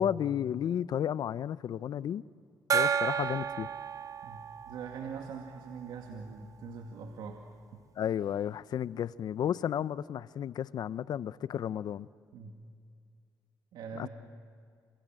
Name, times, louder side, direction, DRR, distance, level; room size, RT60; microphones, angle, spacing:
voice 1, 0.0-2.2 2.7-3.7 8.0-12.1 13.9-14.1, left 9 dB, 65° left, 0.7 m, -32 dB
Gong, 2.7-6.0, right 7 dB, 50° right, 0.7 m, -32 dB
voice 2, 4.2-7.4 7.7-7.9 12.3-12.6 13.7-14.1, right 5 dB, 80° right, 2.2 m, -43 dB
28.0 x 26.5 x 7.6 m
cardioid pair, 80°, 7 cm